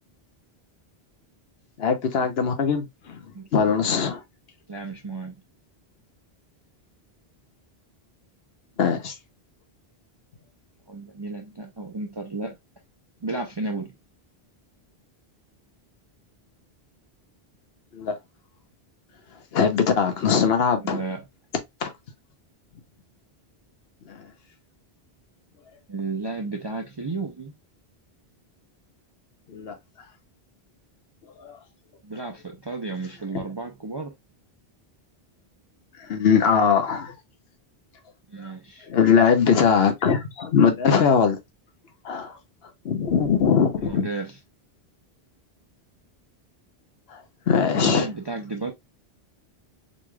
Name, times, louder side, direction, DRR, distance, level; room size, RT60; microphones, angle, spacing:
voice 1, 1.8-3.2 3.5-4.2 8.8-9.1 17.9-18.1 19.5-21.0 21.8-21.9 24.1-24.2 29.5-29.7 31.4-31.6 36.1-37.1 38.9-41.4 42.0-42.3 42.8-44.1 47.1-47.2 47.5-48.1, left 6 dB, 75° left, 1.0 m, -21 dB
voice 2, 4.7-5.4 10.9-12.6 13.2-13.9 20.8-21.3 25.9-27.5 32.0-34.1 38.3-38.9 43.8-44.4 47.7-48.7, right 3 dB, 30° right, 0.5 m, -32 dB
3.9 x 3.1 x 2.2 m
omnidirectional pair, 1.1 m